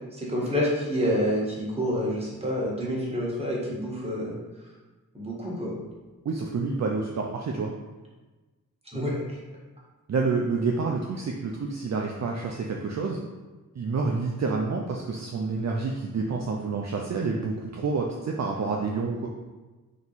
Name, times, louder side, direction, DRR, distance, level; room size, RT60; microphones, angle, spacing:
voice 1, 0.1-4.4 5.1-5.7 8.9-9.4, equal, 15° right, -5 dB, 1.4 m, -28 dB
voice 2, 6.2-7.7 10.1-13.2 13.8-19.3, right 4 dB, 50° right, 0 dB, 0.5 m, -28 dB
3.7 x 3.0 x 4.0 m, 1.2 s
wide cardioid pair, 80°, 35 cm